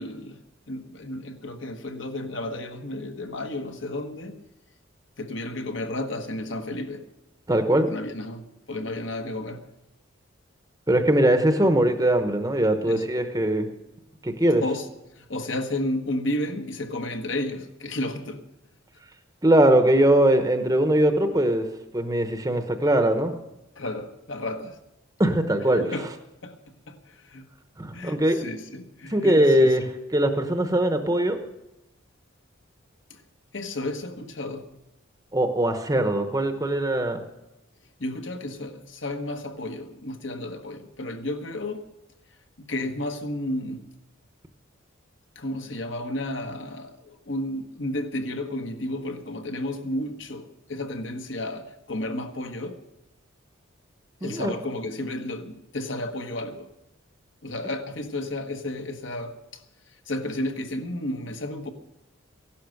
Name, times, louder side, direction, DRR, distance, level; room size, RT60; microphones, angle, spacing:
voice 1, 0.0-4.4 5.2-7.1 7.8-8.4 8.7-9.6 11.6-11.8 12.9-13.1 14.6-14.9 15.2-18.5 23.8-24.8 25.7-26.1 26.4-26.6 26.9-27.5 27.9-29.9 33.1-33.2 33.5-34.7 38.0-41.9 42.7-43.9 45.3-52.8 54.2-56.7 57.4-59.6 60.1-61.7, left 1 dB, 60° left, 1.4 m, -32 dB
voice 2, 7.5-7.9 10.9-13.7 14.2-14.6 19.4-21.7 21.9-23.3 25.2-25.8 27.8-28.4 29.1-29.8 30.1-31.4 35.3-37.2 54.2-54.5, right 1 dB, 15° right, 0.9 m, -21 dB
15.5 x 11.5 x 6.5 m
head